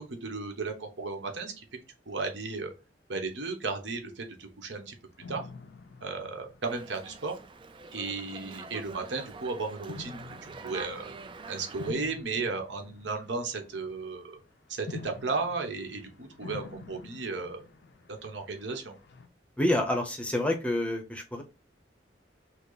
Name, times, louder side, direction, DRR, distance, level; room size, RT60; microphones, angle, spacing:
voice 1, 0.0-1.6 2.1-2.7 3.1-4.9 5.3-5.4 6.0-7.3 7.9-11.1 11.5-14.4 14.7-17.6 18.1-19.0, right 4 dB, 80° right, 4 dB, 1.0 m, -34 dB
sound 1, 5.2-7.5 8.2-8.5 9.9-14.0 14.9-19.3, left 4 dB, 65° left, 0.5 m, -47 dB
Dog, 6.6-11.9, right 4 dB, 30° right, 0.4 m, -46 dB
voice 2, 19.6-21.4, left 1 dB, 5° left, 3 dB, 0.7 m, -28 dB
5.8 x 2.0 x 3.9 m, 0.29 s
head